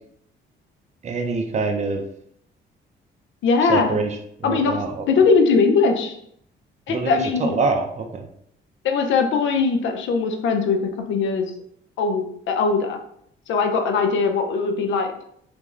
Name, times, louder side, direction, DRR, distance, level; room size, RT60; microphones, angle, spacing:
voice 1, 1.0-2.0 3.7-5.1 6.9-8.3, right 4 dB, 35° right, 4 dB, 0.6 m, -25 dB
voice 2, 3.4-3.9 4.4-6.2 6.9-7.5 8.8-10.8 11.1-11.5 12.0-13.0 13.5-15.1, left 4 dB, 75° left, 5 dB, 0.6 m, -20 dB
3.0 x 2.6 x 3.6 m, 0.69 s
cardioid pair, 90°, 20 cm